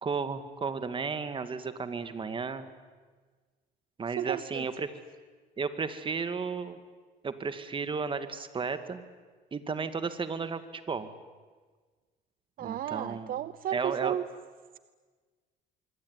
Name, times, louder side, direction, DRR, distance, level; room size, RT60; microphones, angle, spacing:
voice 1, 0.0-2.7 4.0-4.9 5.6-6.8 7.2-9.0 9.5-10.6 10.9-11.1 12.6-13.3 13.7-14.2, right 5 dB, 30° right, 10 dB, 2.2 m, -33 dB
voice 2, 4.2-4.6 12.6-14.2, right 11 dB, 60° right, 15 dB, 0.7 m, -33 dB
25.0 x 23.5 x 9.8 m, 1.4 s
cardioid pair, 110°, 17 cm